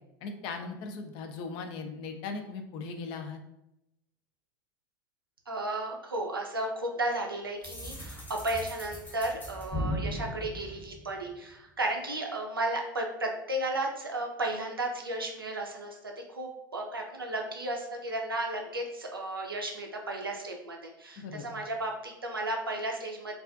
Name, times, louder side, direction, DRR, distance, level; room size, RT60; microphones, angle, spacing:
voice 1, 0.2-3.4 21.2-21.6, left 4 dB, 45° left, 6 dB, 0.4 m, -39 dB
voice 2, 5.5-23.3, right 1 dB, 90° right, 2 dB, 0.4 m, -34 dB
sound 1, 7.6-11.5, equal, 15° left, 0.7 m, -37 dB
2.4 x 2.3 x 2.4 m, 0.86 s
figure-of-eight pair, 80°, 12 cm